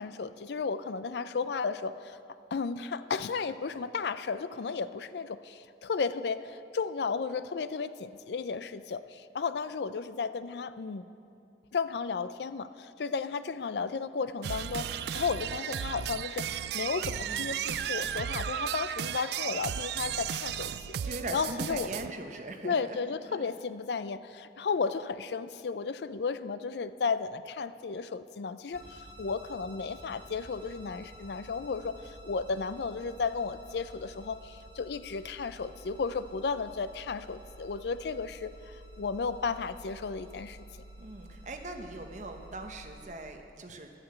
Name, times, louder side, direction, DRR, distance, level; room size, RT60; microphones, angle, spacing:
voice 1, 0.0-2.2 2.5-11.0 11.7-20.7 21.3-21.9 22.6-40.6, left 5 dB, 70° left, 14 dB, 0.4 m, -34 dB
Chicken Loop, 14.4-22.1, right 9 dB, 65° right, 0.3 m, -34 dB
voice 2, 17.2-17.6 21.0-23.0 23.3-23.5 41.0-43.9, right 2 dB, 40° right, 4 dB, 1.0 m, -41 dB
sound 1, 28.7-43.0, right 1 dB, 40° left, 1.1 m, -51 dB
11.5 x 8.7 x 7.7 m, 2.6 s
head